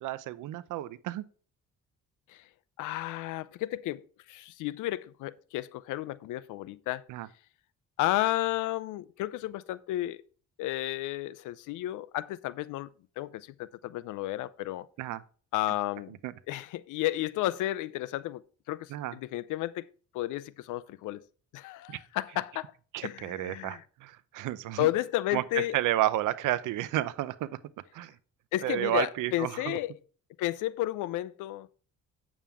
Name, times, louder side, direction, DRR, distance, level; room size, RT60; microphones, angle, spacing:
voice 1, 0.0-1.2 7.1-7.3 15.0-15.2 16.2-16.3 18.9-19.1 21.9-22.0 22.9-24.9 25.3-25.4 25.7-27.5 27.9-28.1 28.6-29.8, right 14 dB, 85° right, 0.7 m, -31 dB
voice 2, 2.8-4.0 4.3-7.0 8.0-10.2 10.6-12.9 13.2-14.9 15.5-16.2 16.5-19.9 20.1-21.2 21.5-22.7 23.0-23.8 24.8-25.8 28.5-30.0 30.4-31.7, left 15 dB, 90° left, 0.5 m, -32 dB
8.8 x 7.2 x 3.5 m
cardioid pair, 90°, 30 cm